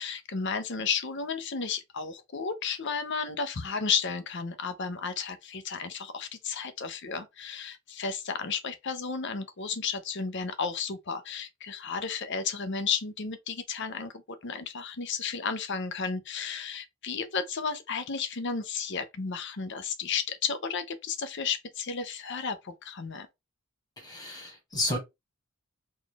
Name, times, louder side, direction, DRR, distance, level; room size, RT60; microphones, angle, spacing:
voice 1, 0.0-23.3, left 5 dB, 55° left, 0.7 m, -33 dB
voice 2, 24.0-25.0, left 1 dB, 15° left, 1.7 m, -31 dB
4.1 x 2.4 x 3.3 m
head